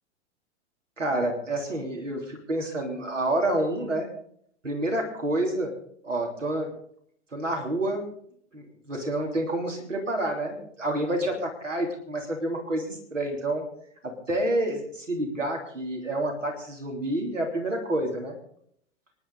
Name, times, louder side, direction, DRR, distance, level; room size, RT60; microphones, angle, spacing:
voice 1, 1.0-4.1 4.6-5.7 6.0-6.7 7.3-8.0 8.5-13.7 14.0-18.4, right 1 dB, 85° right, 2 dB, 3.4 m, -28 dB
25.0 x 11.0 x 4.1 m, 0.66 s
figure-of-eight pair, 100°, 36 cm